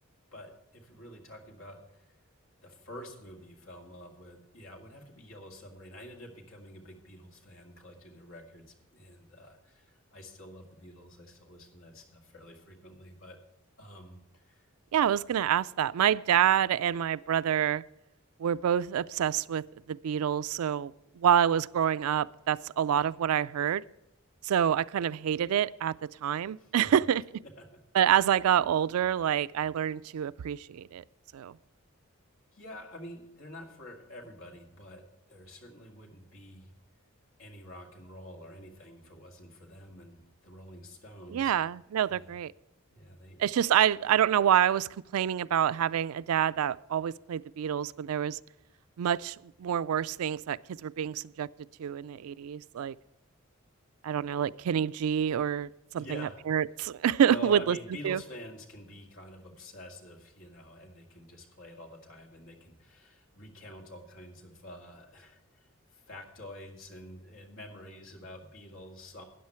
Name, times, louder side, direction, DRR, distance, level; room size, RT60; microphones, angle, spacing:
voice 1, 0.3-2.1 2.6-13.4 13.8-14.7 26.6-27.0 27.6-27.7 32.5-35.0 35.3-36.8 37.4-41.7 42.1-42.3 42.9-43.6 55.9-56.4 57.3-65.7 65.9-69.3, left 1 dB, 65° left, 2 dB, 2.1 m, -48 dB
voice 2, 14.9-17.8 18.4-23.8 24.4-25.9 26.2-27.2 27.9-31.0 31.3-31.6 41.3-42.5 43.4-48.4 49.0-51.5 51.8-53.0 54.0-55.7 55.9-57.8 58.0-58.2, right 9 dB, 90° right, 18 dB, 0.3 m, -27 dB
13.0 x 9.4 x 4.5 m, 0.89 s
head